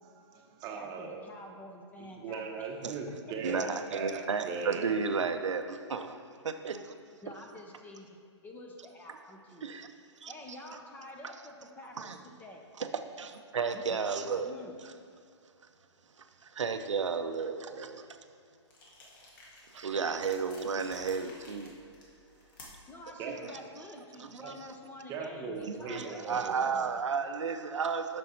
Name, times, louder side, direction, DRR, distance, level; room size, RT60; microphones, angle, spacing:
voice 1, 0.2-1.2 2.0-4.9 23.2-23.3 24.4-24.5 25.1-26.8, right 4 dB, 25° right, 2 dB, 0.9 m, -39 dB
voice 2, 0.7-2.7 7.2-8.2 8.4-9.9 10.3-12.7 13.6-14.0 14.4-14.8 22.9-26.6, left 1 dB, 10° left, 1 dB, 0.7 m, -48 dB
voice 3, 3.4-6.2 6.4-6.9 9.6-9.9 10.2-10.3 12.0-12.2 12.8-14.6 16.4-18.1 19.7-21.7 23.4-23.6 24.2-24.4 25.7-28.2, right 5 dB, 85° right, 7 dB, 0.6 m, -33 dB
sound 1, 18.7-23.0, left 2 dB, 45° left, 1.9 m, -53 dB
7.5 x 6.1 x 4.3 m, 2.4 s
hypercardioid pair, 135°, 15 cm